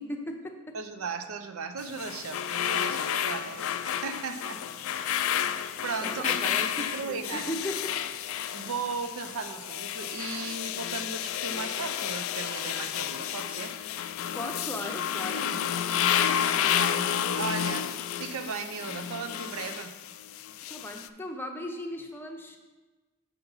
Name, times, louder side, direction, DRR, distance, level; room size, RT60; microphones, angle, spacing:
voice 1, 0.0-0.8 6.0-8.0 8.2-8.4 14.3-15.6 20.7-22.6, left 1 dB, 10° left, 3 dB, 0.6 m, -37 dB
voice 2, 0.7-4.6 4.9-5.1 5.8-6.4 6.9-7.5 8.5-13.7 15.6-17.9 18.2-19.9, right 4 dB, 75° right, 8 dB, 0.6 m, -37 dB
sound 1, 1.8-21.1, left 9 dB, 65° left, 0.3 m, -31 dB
6.8 x 5.7 x 4.0 m, 1.2 s
head